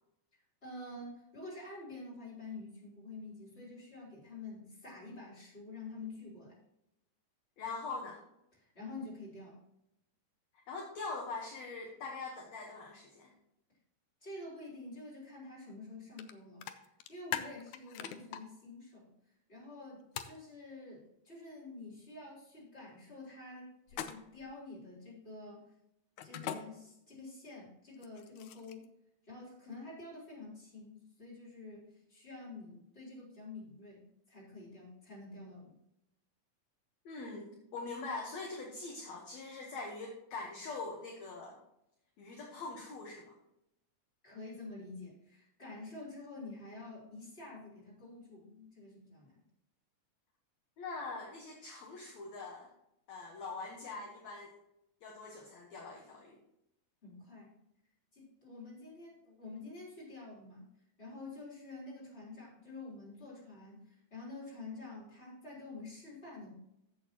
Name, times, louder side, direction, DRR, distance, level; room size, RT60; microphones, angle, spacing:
voice 1, 0.6-6.5 8.6-9.6 14.2-16.7 17.1-19.1 19.5-25.6 26.2-28.8 29.2-35.7 44.2-49.4 57.0-57.5 58.1-60.7 61.0-66.5, left 2 dB, 15° left, -6 dB, 3.9 m, -48 dB
voice 2, 7.6-8.2 10.7-13.3 37.1-41.6 42.2-43.3 50.8-52.7 53.1-54.5 55.0-56.4, left 3 dB, 60° left, 0 dB, 2.1 m, -43 dB
sound 1, 16.2-16.3 16.6-18.4 20.2-20.4 23.9-24.4 26.2-26.6 27.9-28.9, left 11 dB, 90° left, 1.6 m, -40 dB
14.5 x 6.5 x 2.9 m, 0.83 s
omnidirectional pair, 4.2 m